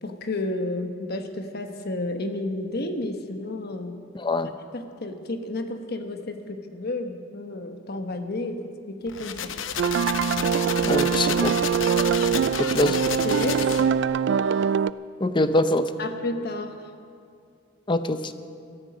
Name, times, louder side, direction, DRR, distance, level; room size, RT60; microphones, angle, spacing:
voice 1, 0.0-4.0 4.4-9.5 12.5-13.8 16.0-16.8, left 2 dB, 55° left, 6 dB, 1.2 m, -32 dB
voice 2, 4.1-4.5 10.8-11.5 12.7-13.0 15.2-15.9 17.9-18.3, left 1 dB, 25° left, 10 dB, 0.6 m, -23 dB
sound 1, 9.1-14.0, left 8 dB, 80° left, 0.7 m, -32 dB
sound 2, 9.8-14.9, right 7 dB, 65° right, 0.3 m, -23 dB
17.5 x 13.5 x 5.2 m, 2.4 s
head